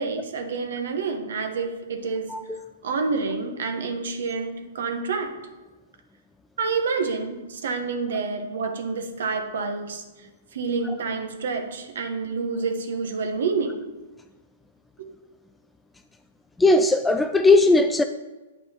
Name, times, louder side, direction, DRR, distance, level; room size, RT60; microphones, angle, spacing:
voice 1, 0.0-2.4 2.8-5.3 6.6-10.0 10.5-13.8 15.0-15.1, right 4 dB, 70° right, 5 dB, 1.3 m, -28 dB
voice 2, 16.6-18.0, left 2 dB, 5° left, 7 dB, 0.3 m, -18 dB
9.0 x 5.4 x 4.4 m, 1.2 s
hypercardioid pair, 135°, 0 cm